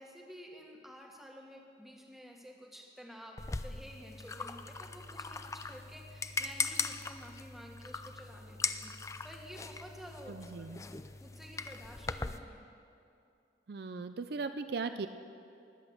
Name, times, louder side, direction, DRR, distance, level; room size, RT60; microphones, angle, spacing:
voice 1, 0.0-8.9 9.2-10.9 11.2-12.7, equal, ahead, 0 dB, 1.5 m, -51 dB
sound 1, 3.4-12.4, left 4 dB, 15° left, 0.4 m, -40 dB
voice 2, 10.3-10.7 13.7-15.1, right 4 dB, 60° right, 10 dB, 0.4 m, -38 dB
19.5 x 8.0 x 6.9 m, 2.6 s
head